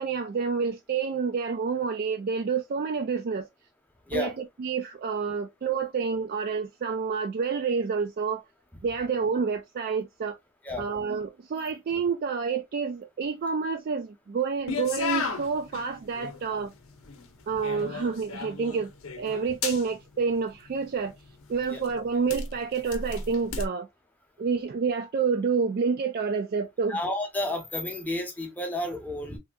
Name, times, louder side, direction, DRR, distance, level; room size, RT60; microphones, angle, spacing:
voice 1, 0.0-3.5 4.1-8.4 8.8-10.4 10.8-16.7 17.5-18.9 19.2-21.2 21.5-23.9 24.4-27.0, right 5 dB, 45° right, 0.3 m, -28 dB
sound 1, 14.7-23.7, left 5 dB, 75° left, 0.7 m, -37 dB
voice 2, 26.9-29.4, left 1 dB, 10° left, 0.7 m, -31 dB
3.3 x 2.6 x 2.3 m
head